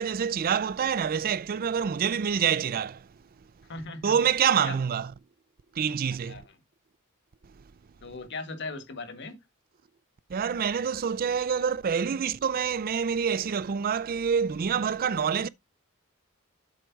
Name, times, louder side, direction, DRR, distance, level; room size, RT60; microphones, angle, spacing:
voice 1, 0.0-3.1 4.0-5.1 5.7-6.4 10.3-15.5, right 7 dB, 40° right, 0.4 m, -26 dB
voice 2, 3.7-4.2 4.6-4.8 6.3-6.6 8.0-9.4, left 3 dB, 55° left, 1.6 m, -38 dB
7.8 x 5.2 x 4.6 m
head